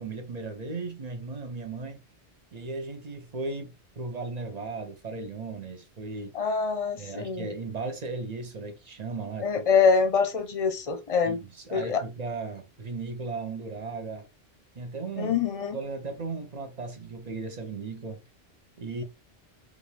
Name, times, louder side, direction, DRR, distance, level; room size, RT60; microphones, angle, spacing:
voice 1, 0.0-2.0 2.5-6.4 7.0-9.5 11.2-14.3 14.7-15.4 15.7-18.2 18.8-19.0, right 3 dB, 40° right, 0.9 m, -36 dB
voice 2, 6.3-7.5 9.4-11.4 11.7-12.0 15.2-15.8, left 5 dB, 40° left, 0.7 m, -25 dB
5.0 x 2.6 x 3.3 m
omnidirectional pair, 1.1 m